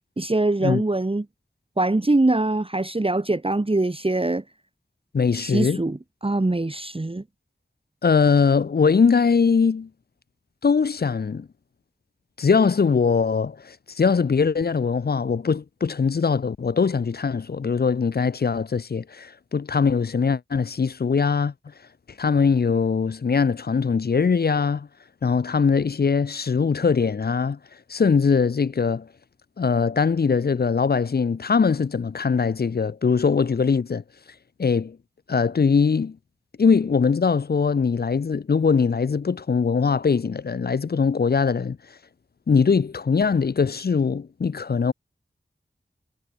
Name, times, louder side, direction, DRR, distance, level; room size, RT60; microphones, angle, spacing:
voice 1, 0.2-1.2 1.8-4.4 5.3-7.2, right 2 dB, 30° right, 1.4 m, -23 dB
voice 2, 5.1-5.8 8.0-9.9 10.6-11.5 12.4-21.5 22.2-24.9 25.2-27.6 27.9-29.1 29.6-34.0 34.6-35.0 35.3-36.2 36.6-41.8 42.5-44.9, left 5 dB, 55° left, 0.5 m, -21 dB
wide cardioid pair, 50°, 19 cm